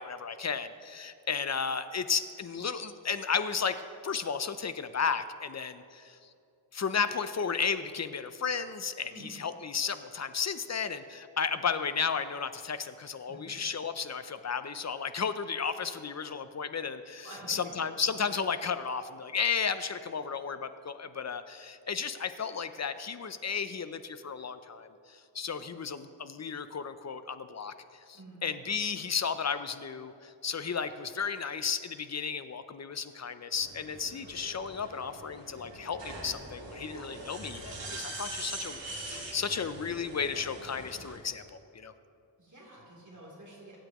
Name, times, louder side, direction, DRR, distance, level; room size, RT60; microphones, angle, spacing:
voice 1, 0.0-3.8 4.0-6.2 6.7-41.9, left 6 dB, 35° left, 11 dB, 0.6 m, -34 dB
voice 2, 9.1-9.4 13.3-13.5 17.2-17.7 28.1-28.4 42.4-43.8, right 1 dB, 40° right, -5 dB, 3.3 m, -49 dB
sound 1, 33.5-41.2, right 2 dB, 70° right, 2.7 m, -43 dB
23.5 x 9.0 x 3.0 m, 2.5 s
wide cardioid pair, 115°, 45 cm